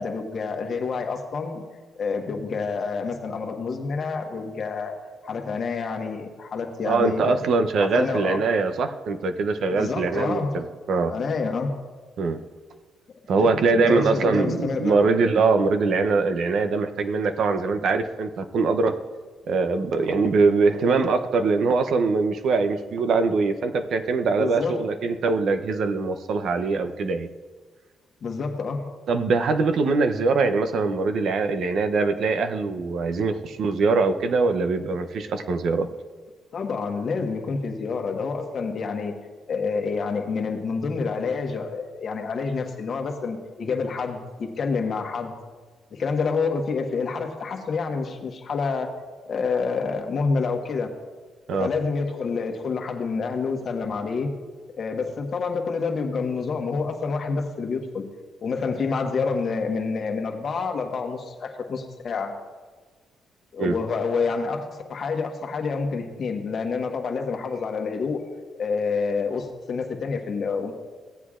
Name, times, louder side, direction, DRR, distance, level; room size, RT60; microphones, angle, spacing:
voice 1, 0.0-1.6 2.0-5.0 5.2-7.3 7.8-8.4 9.7-10.6 11.1-11.8 13.4-15.0 24.4-24.8 28.2-28.9 36.5-39.1 39.5-45.3 45.9-48.9 49.3-50.9 51.6-54.3 54.8-58.1 58.4-62.3 63.5-68.2 68.6-70.7, left 4 dB, 50° left, 3 dB, 1.3 m, -28 dB
voice 2, 6.8-11.2 12.2-12.4 13.3-19.0 19.5-27.3 29.1-35.9 51.5-51.7 63.6-63.7, right 4 dB, 65° right, 8 dB, 0.7 m, -22 dB
16.5 x 8.0 x 2.5 m, 1.4 s
cardioid pair, 90°, 0 cm